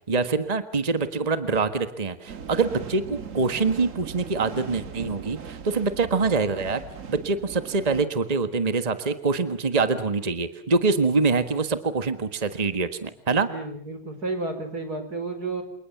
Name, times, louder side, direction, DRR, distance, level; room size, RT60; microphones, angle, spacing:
voice 1, 0.1-6.8 7.1-13.5, right 4 dB, 25° right, 10 dB, 1.6 m, -25 dB
sound 1, 2.3-8.0, right 6 dB, 60° right, 1.9 m, -39 dB
voice 2, 13.5-15.6, right 3 dB, 80° right, 8 dB, 5.1 m, -31 dB
28.5 x 28.5 x 7.2 m, 0.64 s
omnidirectional pair, 1.6 m